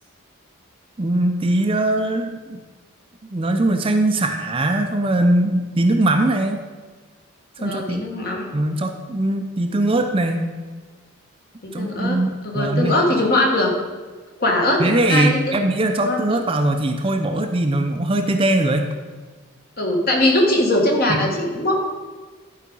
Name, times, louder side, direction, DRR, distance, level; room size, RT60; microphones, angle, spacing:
voice 1, 1.0-2.6 3.3-6.6 7.6-8.0 8.5-10.5 11.7-12.9 14.8-18.9 21.1-21.2, right 1 dB, 25° right, 5 dB, 0.5 m, -21 dB
voice 2, 7.6-8.5 11.6-12.2 12.4-13.7 14.4-15.6 16.0-16.2 19.8-21.8, left 1 dB, 45° left, 0 dB, 1.7 m, -20 dB
11.0 x 4.9 x 5.4 m, 1.4 s
head